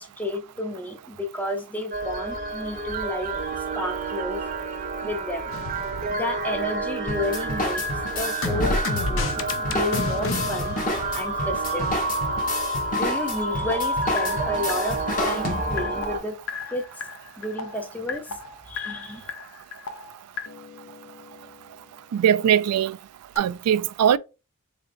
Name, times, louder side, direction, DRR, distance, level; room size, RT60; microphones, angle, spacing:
voice 1, 0.0-3.3 3.8-4.4 5.0-5.6 6.1-7.9 8.1-10.8 11.1-11.9 12.9-16.4 16.7-16.8 17.4-18.4 18.7-19.3, left 1 dB, 5° left, 0.5 m, -31 dB
sound 1, 1.9-16.2, right 2 dB, 40° right, 0.7 m, -29 dB
sound 2, 5.5-7.0 7.3-12.0 13.7-21.6 23.4-23.5, left 3 dB, 60° left, 0.6 m, -33 dB
sound 3, 7.1-16.0, left 1 dB, 35° left, 0.9 m, -31 dB
voice 2, 22.1-23.0 23.4-24.2, right 9 dB, 80° right, 0.3 m, -20 dB
3.9 x 3.3 x 2.5 m
head